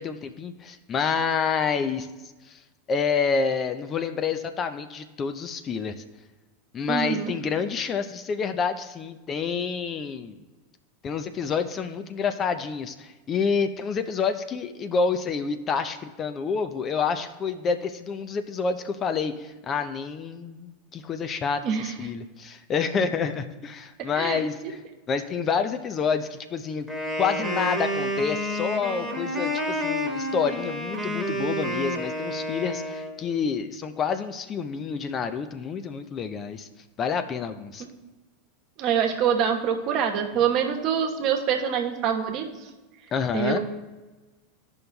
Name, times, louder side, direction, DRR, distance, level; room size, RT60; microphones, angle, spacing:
voice 1, 0.0-2.1 2.5-2.6 2.9-6.0 6.7-10.4 11.0-24.8 25.1-26.9 27.2-36.7 37.0-37.8 43.1-43.6, left 5 dB, 35° left, 9 dB, 0.5 m, -28 dB
voice 2, 6.9-7.3 21.6-21.9 24.2-24.4 37.8-37.9 38.8-42.5 43.3-43.6, right 8 dB, 50° right, 3 dB, 1.1 m, -25 dB
Wind instrument woodwind instrument, 26.9-33.1, equal, 10° left, 1.5 m, -29 dB
13.5 x 5.4 x 2.3 m, 1.2 s
hypercardioid pair, 90°, 0 cm